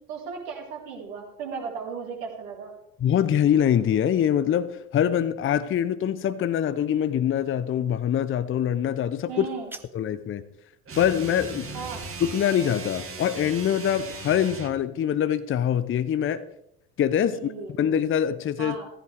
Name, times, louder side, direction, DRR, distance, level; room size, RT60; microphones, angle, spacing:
voice 1, 0.1-2.7 9.3-9.7 11.7-12.0 17.3-17.7 18.6-18.9, right 5 dB, 60° right, -1 dB, 4.2 m, -36 dB
voice 2, 3.0-9.5 9.9-10.4 11.0-11.7 12.2-16.4 17.0-17.5 17.8-18.8, left 9 dB, 30° left, 12 dB, 0.8 m, -24 dB
sound 1, 9.3-10.3, right 1 dB, 5° right, 1.1 m, -46 dB
sound 2, 10.8-14.8, right 4 dB, 30° right, 2.6 m, -38 dB
16.0 x 15.0 x 3.5 m, 0.80 s
figure-of-eight pair, 65°, 43 cm